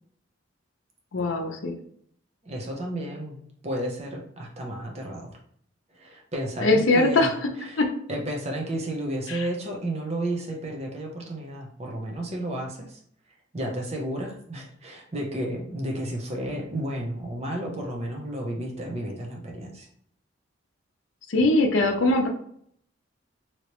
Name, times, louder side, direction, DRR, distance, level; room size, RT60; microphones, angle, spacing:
voice 1, 1.1-1.8 6.6-7.3 7.8-7.9 9.3-9.5 21.3-22.3, left 2 dB, 80° left, 3 dB, 0.6 m, -21 dB
voice 2, 2.4-3.4 3.6-5.4 5.9-7.3 7.6-7.8 8.1-13.0 13.5-19.9, right 1 dB, 35° right, 0 dB, 0.8 m, -32 dB
3.1 x 2.9 x 3.0 m, 0.64 s
head